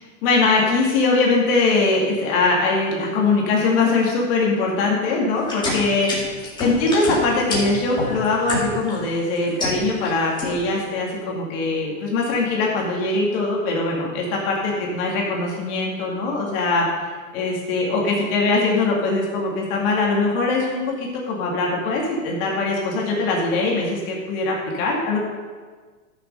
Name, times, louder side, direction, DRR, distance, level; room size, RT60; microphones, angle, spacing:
voice 1, 0.0-25.2, left 3 dB, 40° left, -2 dB, 2.2 m, -22 dB
sound 1, 5.4-9.0 9.4-10.1 10.4-10.8, left 2 dB, 10° left, 2.4 m, -27 dB
12.0 x 6.7 x 5.4 m, 1.5 s
supercardioid pair, 150°, 42 cm